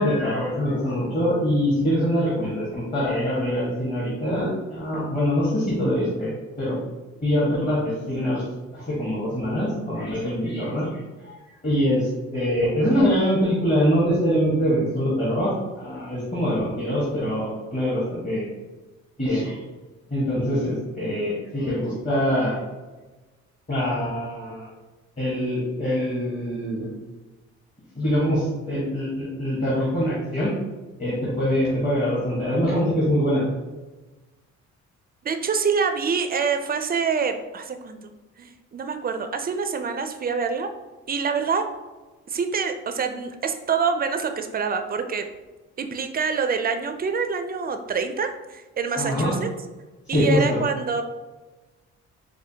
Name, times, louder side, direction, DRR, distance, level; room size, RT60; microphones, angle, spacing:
voice 1, 0.0-6.7 7.2-8.4 8.7-10.9 11.2-11.4 11.6-18.5 19.2-19.6 20.1-22.6 23.7-24.7 25.2-26.9 27.9-30.5 31.0-33.5 49.0-49.3 50.1-50.6, equal, 25° left, -7 dB, 1.3 m, -24 dB
voice 2, 35.2-38.0 38.4-40.7 41.1-41.7 42.3-45.3 45.8-49.5 50.1-51.0, right 5 dB, 30° right, 7 dB, 0.4 m, -26 dB
4.8 x 2.1 x 2.8 m, 1.2 s
cardioid pair, 90°, 30 cm